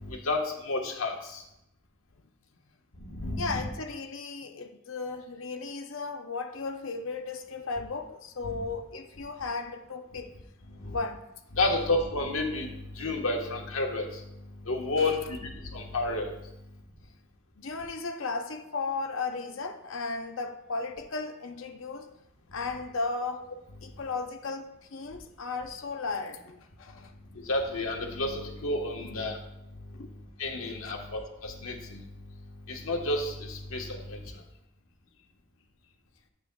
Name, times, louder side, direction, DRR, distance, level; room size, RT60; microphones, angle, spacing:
voice 1, 0.0-1.4 3.0-3.7 8.4-8.6 10.8-11.0 11.5-12.7 12.9-14.2 14.6-16.3 27.3-29.4 30.4-32.0 32.7-34.2, left 2 dB, 85° left, 1 dB, 1.4 m, -31 dB
voice 2, 3.4-10.3 10.9-11.2 15.0-15.2 17.6-22.1 22.5-23.4 23.8-27.1 29.9-30.1 30.8-31.0, left 4 dB, 70° left, 5 dB, 0.7 m, -35 dB
9.8 x 8.0 x 2.3 m, 0.84 s
head